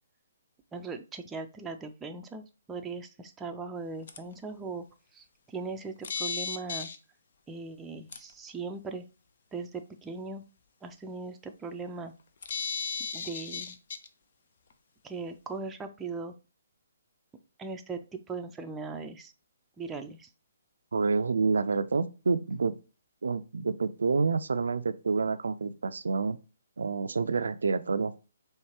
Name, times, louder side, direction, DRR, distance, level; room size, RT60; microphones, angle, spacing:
voice 1, 0.7-4.9 5.1-6.9 7.5-9.0 9.5-10.4 10.8-12.1 13.1-13.8 15.0-16.3 17.6-19.3 19.8-20.3, right 4 dB, 10° right, 0.4 m, -39 dB
sound 1, 4.1-4.2 6.0-7.0 8.1-8.2 12.4-14.1, left 5 dB, 55° left, 0.6 m, -34 dB
voice 2, 20.9-22.7 23.2-26.4 26.8-28.1, right 4 dB, 75° right, 0.3 m, -28 dB
4.5 x 3.1 x 2.9 m
figure-of-eight pair, 140°, 0 cm